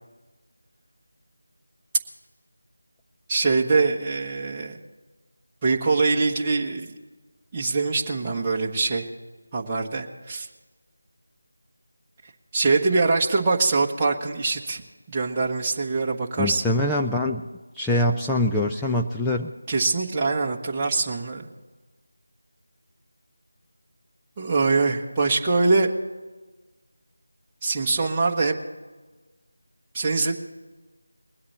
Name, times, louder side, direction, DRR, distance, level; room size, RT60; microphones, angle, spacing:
voice 1, 3.3-4.8 5.6-6.9 7.5-9.1 9.5-10.5 12.5-14.8 15.1-16.6 19.7-21.5 24.4-25.9 27.6-28.5 29.9-30.3, right 3 dB, 15° right, -3 dB, 1.3 m, -23 dB
voice 2, 16.4-17.4 17.7-19.5, left 1 dB, 5° left, -2 dB, 0.4 m, -24 dB
21.5 x 8.5 x 4.3 m, 1.3 s
figure-of-eight pair, 170°, 0 cm